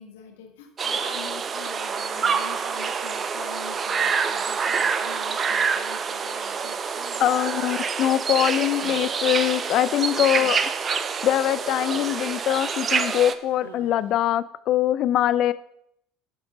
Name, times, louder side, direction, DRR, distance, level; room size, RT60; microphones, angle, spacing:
voice 1, 0.0-7.4, left 8 dB, 75° left, 3 dB, 1.5 m, -45 dB
sound 1, 0.8-13.3, right 6 dB, 35° right, 0.7 m, -27 dB
voice 2, 7.2-10.7 11.2-15.5, left 12 dB, 55° left, 15 dB, 0.3 m, -23 dB
Human voice, 8.4-9.5 9.9-12.8 13.1-14.0, right 7 dB, 80° right, 0.8 m, -46 dB
10.5 x 5.0 x 5.1 m, 0.73 s
hypercardioid pair, 70°, 0 cm